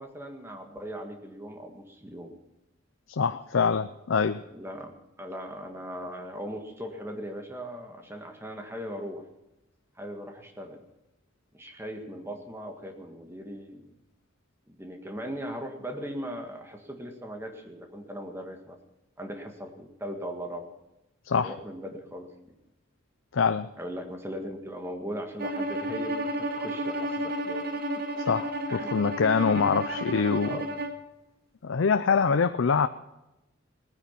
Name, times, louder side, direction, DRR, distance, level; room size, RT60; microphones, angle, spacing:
voice 1, 0.0-2.3 4.5-9.2 10.0-10.8 11.5-13.8 14.7-18.8 19.2-20.7 21.4-22.3 23.8-27.6 27.9-28.0 28.7-29.0 29.5-29.6 30.4-30.7, equal, 10° right, 3 dB, 1.7 m, -39 dB
voice 2, 3.1-4.4 21.3-21.5 23.3-23.7 28.2-30.6 31.6-32.9, left 5 dB, 75° left, 10 dB, 0.5 m, -25 dB
Bowed string instrument, 25.4-31.0, equal, 50° right, 1.1 m, -32 dB
18.5 x 9.7 x 5.9 m, 0.93 s
head